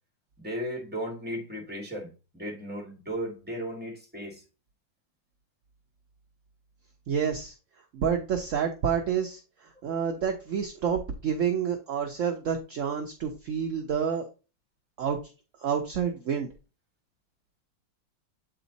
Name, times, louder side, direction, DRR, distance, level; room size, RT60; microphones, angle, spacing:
voice 1, 0.4-4.4, equal, 5° right, 1.9 m, -36 dB
voice 2, 7.1-7.5 7.9-9.4 9.8-14.3 15.0-15.2 15.6-16.5, right 7 dB, 60° right, 0.8 m, -28 dB
8.2 x 3.4 x 4.0 m
omnidirectional pair, 2.1 m